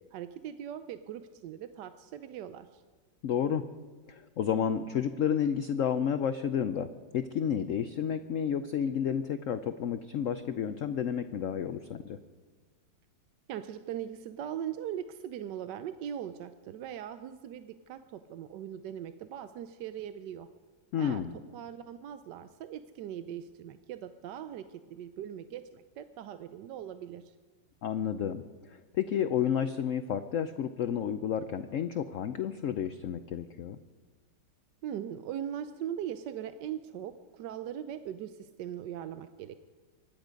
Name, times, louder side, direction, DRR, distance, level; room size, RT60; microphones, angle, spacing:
voice 1, 0.0-2.8 13.5-20.5 21.0-21.2 21.5-27.3 34.8-39.6, right 10 dB, 75° right, 10 dB, 1.2 m, -40 dB
voice 2, 3.2-3.7 4.1-12.2 20.9-21.4 27.8-28.4 28.7-33.8, left 8 dB, 70° left, 10 dB, 0.7 m, -31 dB
24.5 x 11.0 x 5.2 m, 1.5 s
omnidirectional pair, 2.0 m